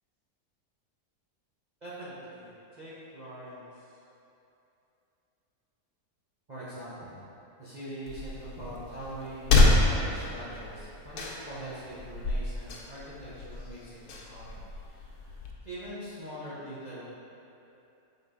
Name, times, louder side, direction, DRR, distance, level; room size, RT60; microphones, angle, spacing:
voice 1, 1.8-4.0 6.5-7.2 7.6-14.6 14.9-17.0, right 1 dB, 30° right, -11 dB, 1.1 m, -43 dB
sound 1, 8.1-15.5, left 2 dB, 75° left, 1.3 m, -28 dB
7.7 x 3.8 x 3.8 m, 2.8 s
omnidirectional pair, 1.7 m